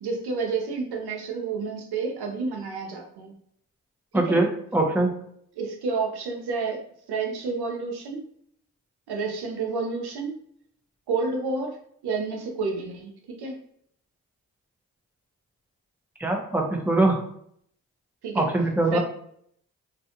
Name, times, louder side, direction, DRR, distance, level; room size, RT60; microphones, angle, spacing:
voice 1, 0.0-3.3 4.3-4.4 5.6-8.2 9.1-10.4 11.1-11.8 12.0-13.6 18.2-18.4 18.9-19.0, right 4 dB, 80° right, 2 dB, 0.6 m, -30 dB
voice 2, 4.1-4.5 4.7-5.1 16.2-17.2 18.3-19.0, right 2 dB, 5° right, 1 dB, 0.7 m, -22 dB
2.5 x 2.3 x 2.8 m, 0.66 s
supercardioid pair, 40°, 38 cm